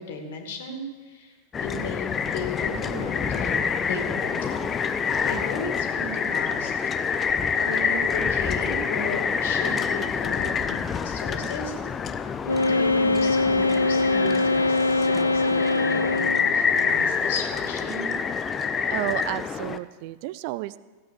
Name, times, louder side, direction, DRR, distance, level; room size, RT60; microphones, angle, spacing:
voice 1, 0.0-4.6 5.2-6.7 7.1-7.2 7.6-11.7 12.6-18.2, left 2 dB, 55° left, 4 dB, 2.4 m, -35 dB
sound 1, 1.5-19.8, left 6 dB, 20° left, 0.6 m, -27 dB
Wind instrument woodwind instrument, 12.5-16.5, left 3 dB, 80° left, 0.3 m, -22 dB
voice 2, 18.9-20.8, right 17 dB, 45° right, 17 dB, 0.5 m, -31 dB
16.0 x 8.5 x 7.0 m, 1.3 s
figure-of-eight pair, 90°, 0 cm